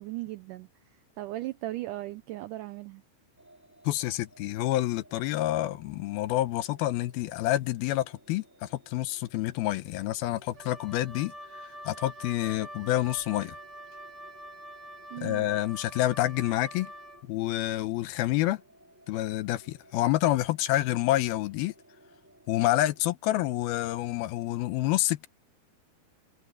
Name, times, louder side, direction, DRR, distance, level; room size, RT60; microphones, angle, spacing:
voice 1, 0.0-3.0 15.1-15.5, right 16 dB, 85° right, 1.8 m, -37 dB
sound 1, 3.4-23.1, right 1 dB, 5° right, 5.1 m, -59 dB
voice 2, 3.9-11.3 11.6-13.6 15.2-16.9 17.3-18.6 19.1-21.7 22.5-25.3, left 15 dB, 85° left, 2.7 m, -28 dB
Wind instrument woodwind instrument, 10.5-17.2, equal, 55° right, 0.7 m, -45 dB
omnidirectional pair, 4.5 m